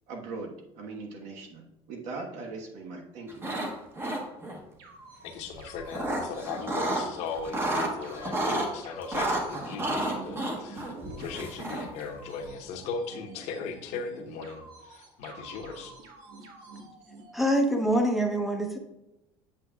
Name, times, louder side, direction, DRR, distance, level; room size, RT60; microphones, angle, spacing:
voice 1, 0.1-3.3, right 3 dB, 65° right, 1 dB, 1.4 m, -40 dB
sound 1, 3.3-3.7 4.0-4.6 5.5-7.1 7.4-8.7 9.1-12.0, right 1 dB, 20° right, 1.0 m, -30 dB
sound 2, 4.8-17.6, right 2 dB, 85° right, 1.5 m, -49 dB
voice 2, 5.2-15.9, left 5 dB, 65° left, 4 dB, 1.0 m, -38 dB
voice 3, 17.3-18.8, right 1 dB, ahead, 3 dB, 0.8 m, -25 dB
8.2 x 7.0 x 2.3 m, 0.95 s
cardioid pair, 140°, 12 cm